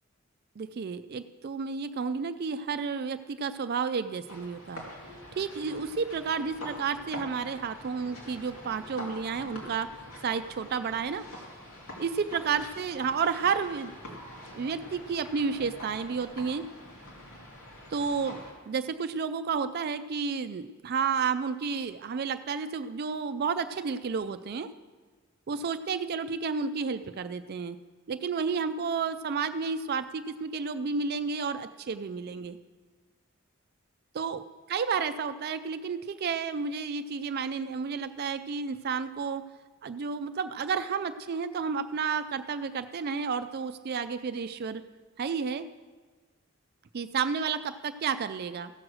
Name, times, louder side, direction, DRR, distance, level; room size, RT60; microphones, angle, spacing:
voice 1, 0.6-4.8 5.3-9.9 10.2-11.3 12.0-14.2 14.5-16.6 17.9-18.4 18.7-24.7 25.5-27.8 28.1-32.6 34.1-39.4 39.8-44.8 45.2-45.7 46.9-48.7, right 5 dB, 50° right, 11 dB, 0.4 m, -31 dB
sound 1, 4.3-18.5, left 1 dB, 90° left, 2.6 m, -45 dB
15.0 x 6.3 x 6.2 m, 1.4 s
head